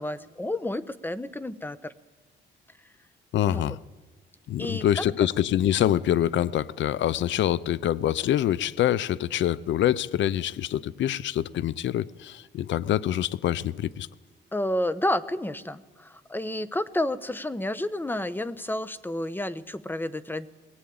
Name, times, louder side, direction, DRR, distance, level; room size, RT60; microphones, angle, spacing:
voice 1, 0.0-1.9 3.5-3.8 4.6-5.1 14.5-20.5, left 1 dB, 10° left, 1.1 m, -30 dB
voice 2, 3.3-3.8 4.5-14.1, left 11 dB, 70° left, 0.7 m, -25 dB
21.5 x 18.0 x 8.8 m
cardioid pair, 90°, 20 cm